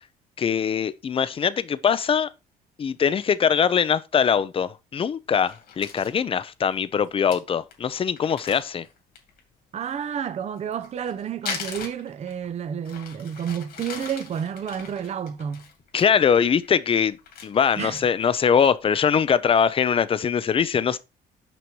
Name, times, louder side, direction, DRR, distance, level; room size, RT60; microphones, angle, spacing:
voice 1, 0.4-2.3 2.8-8.9 15.9-17.2 17.4-21.0, left 7 dB, 35° left, 0.6 m, -22 dB
Crumpling crinkling, 5.4-6.2 6.7-6.8 7.0-7.1 7.3-7.4 7.7-7.8 8.2-9.4 10.6-12.5 12.8-16.0 16.4-16.7 17.0-18.2 18.6-18.7 19.1-19.6, left 6 dB, 65° left, 2.4 m, -39 dB
voice 2, 9.7-15.7 17.8-18.0, right 8 dB, 40° right, 0.7 m, -30 dB
6.2 x 5.8 x 4.7 m
cardioid pair, 110°, 17 cm